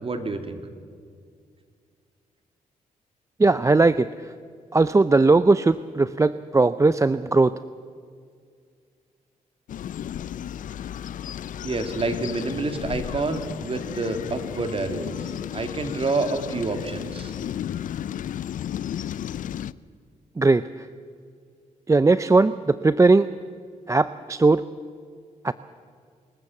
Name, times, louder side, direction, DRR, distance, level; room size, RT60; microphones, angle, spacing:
voice 1, 0.0-0.6 11.6-17.3, right 3 dB, 40° right, 7 dB, 2.5 m, -28 dB
voice 2, 3.4-4.1 4.7-7.5 20.4-20.9 21.9-23.3 23.9-24.6 25.4-25.5, right 3 dB, 20° right, 15 dB, 0.5 m, -19 dB
sound 1, 9.7-19.7, left 10 dB, 70° left, 0.5 m, -33 dB
26.5 x 14.5 x 7.2 m, 2.1 s
cardioid pair, 60°, 14 cm